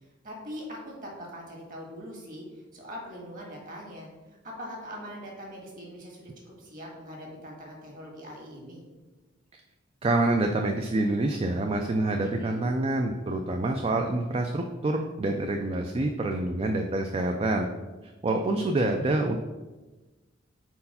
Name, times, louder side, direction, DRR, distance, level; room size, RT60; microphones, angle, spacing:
voice 1, 0.2-8.8 12.2-12.6, equal, 45° right, -1 dB, 1.8 m, -42 dB
voice 2, 10.0-17.7 18.2-19.4, right 2 dB, 30° right, 4 dB, 0.3 m, -27 dB
4.5 x 4.3 x 5.5 m, 1.2 s
head